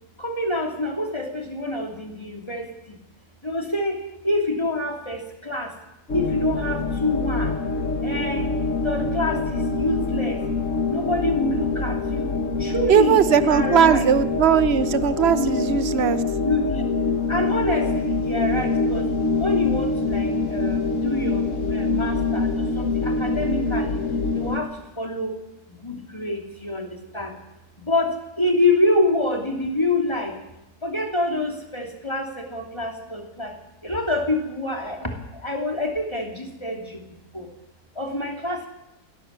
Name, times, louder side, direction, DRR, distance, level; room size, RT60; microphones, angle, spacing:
voice 1, 0.2-3.0 3.4-5.7 6.1-7.6 8.0-8.5 8.8-10.4 10.9-12.3 12.6-14.0 15.3-15.5 16.4-16.9 17.3-19.0 19.4-24.0 24.3-25.4 25.7-27.3 27.8-30.4 30.8-33.5 33.8-37.0 37.3-37.5 38.0-38.7, left 2 dB, 15° left, 2 dB, 2.9 m, -26 dB
sound 1, 6.1-24.6, left 3 dB, 55° left, 1.8 m, -25 dB
voice 2, 12.9-16.2, right 8 dB, 45° right, 12 dB, 1.1 m, -19 dB
20.5 x 17.5 x 7.5 m, 0.92 s
omnidirectional pair, 1.7 m